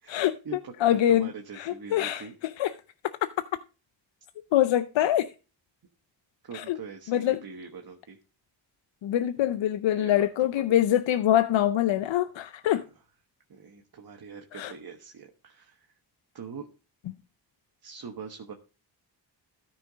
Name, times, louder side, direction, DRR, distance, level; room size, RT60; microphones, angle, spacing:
voice 1, 0.0-2.3 6.4-8.2 9.4-9.5 9.8-10.3 10.5-10.6 12.7-12.8 13.5-15.9 16.3-16.7 17.8-18.5, right 6 dB, 55° right, 1.4 m, -43 dB
voice 2, 0.8-1.3 1.6-2.2 2.6-2.7 4.5-5.3 6.5-6.8 7.1-7.4 9.0-12.8 14.5-14.7 17.1-17.2, left 12 dB, 85° left, 0.6 m, -24 dB
13.5 x 5.9 x 3.9 m
cardioid pair, 85°, 44 cm